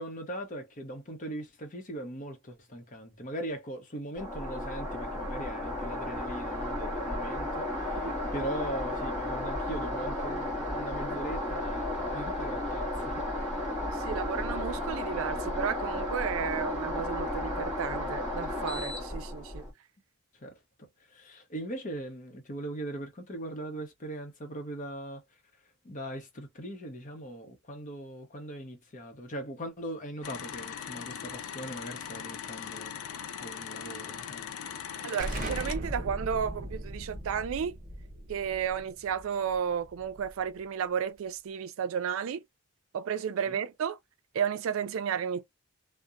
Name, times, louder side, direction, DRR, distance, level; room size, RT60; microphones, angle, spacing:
voice 1, 0.0-13.5 20.4-20.5 20.8-25.2 25.8-33.0 33.4-34.5 43.5-43.6, right 1 dB, 35° left, 0.7 m, -40 dB
sound 1, 4.2-19.7, left 1 dB, 5° right, 1.3 m, -33 dB
voice 2, 13.8-19.7 35.0-37.7 38.3-42.4 42.9-44.0 44.3-45.4, right 7 dB, 65° right, 0.3 m, -33 dB
sound 2, 30.2-35.8, left 8 dB, 75° left, 0.4 m, -40 dB
Explosion, 35.2-40.6, right 1 dB, 40° right, 0.7 m, -39 dB
2.7 x 2.1 x 2.4 m
head